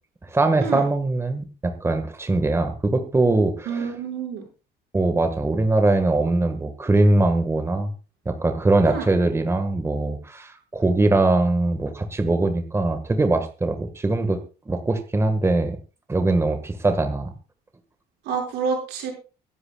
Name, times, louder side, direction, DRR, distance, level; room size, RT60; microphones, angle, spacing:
voice 1, 0.2-3.9 4.9-7.9 8.3-14.4 14.7-15.8 16.1-17.3, right 2 dB, 15° right, 7 dB, 1.7 m, -21 dB
voice 2, 3.7-4.4 8.8-9.0 18.2-19.1, right 6 dB, 85° right, 1 dB, 5.9 m, -28 dB
24.0 x 11.5 x 2.4 m, 0.33 s
cardioid pair, 110°, 17 cm